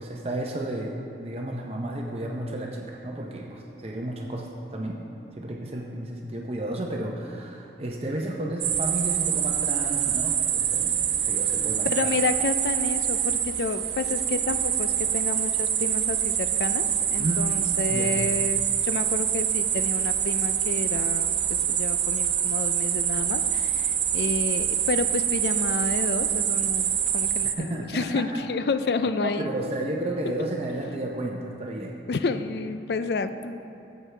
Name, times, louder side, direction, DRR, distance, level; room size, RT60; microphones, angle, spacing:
voice 1, 0.0-5.0 5.4-12.1 17.2-17.5 17.9-18.1 27.4-28.4 29.2-32.0, right 1 dB, 35° right, -1 dB, 0.6 m, -32 dB
sound 1, 8.6-27.5, right 9 dB, 75° right, 0.7 m, -25 dB
voice 2, 11.9-29.5 32.1-33.6, left 4 dB, 65° left, 11 dB, 0.4 m, -30 dB
14.0 x 8.0 x 3.3 m, 2.8 s
head